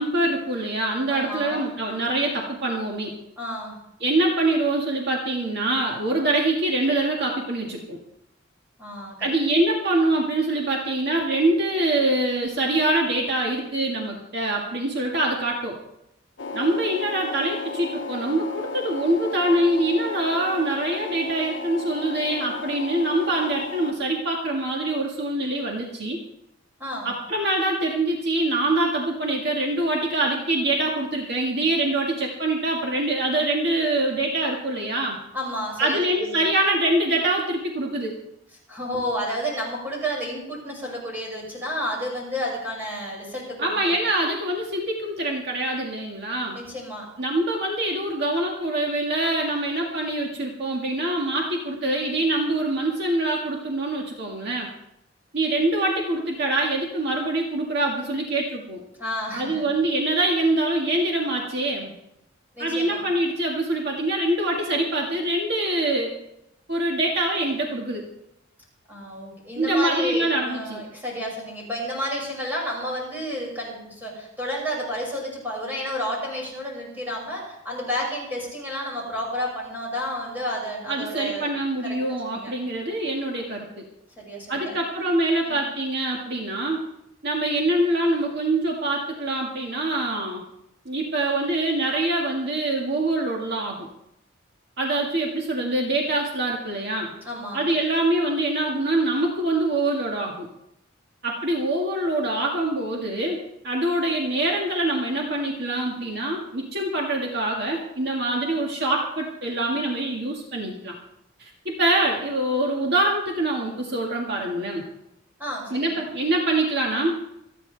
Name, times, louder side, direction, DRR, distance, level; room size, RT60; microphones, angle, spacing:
voice 1, 0.0-3.1 4.0-8.0 9.2-15.8 16.5-26.2 27.0-35.2 35.8-38.2 43.6-46.6 47.2-54.7 55.3-58.8 59.3-61.9 62.6-66.1 66.7-68.1 69.6-70.8 80.9-83.8 84.5-86.8 87.2-90.4 90.9-93.9 94.8-97.1 97.5-100.5 101.2-103.4 103.6-110.9 111.4-114.9 115.7-117.1, right 1 dB, 55° right, -1 dB, 1.9 m, -24 dB
voice 2, 1.1-1.6 3.4-3.8 8.8-9.3 26.8-27.1 35.3-36.4 38.7-43.9 46.5-47.1 59.0-59.6 62.5-63.0 68.9-81.5 81.8-82.0 82.3-82.5 84.2-84.7 85.4-85.6 97.2-97.6 115.4-116.0, equal, 10° right, -4 dB, 6.2 m, -31 dB
sound 1, 16.4-23.9, left 4 dB, 60° left, 0.8 m, -34 dB
27.0 x 10.0 x 3.4 m, 0.83 s
head